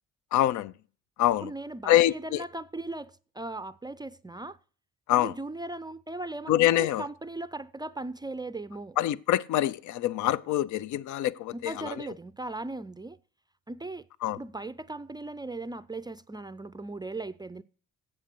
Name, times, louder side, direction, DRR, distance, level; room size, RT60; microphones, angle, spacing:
voice 1, 0.3-0.7 1.2-1.5 1.9-2.4 5.1-5.3 6.5-7.0 9.0-11.9 14.2-14.4, left 13 dB, 75° left, 0.5 m, -25 dB
voice 2, 1.4-4.6 5.1-9.0 11.5-13.2 13.7-17.6, right 2 dB, 15° right, 0.4 m, -38 dB
7.9 x 7.4 x 7.6 m
cardioid pair, 90°, 30 cm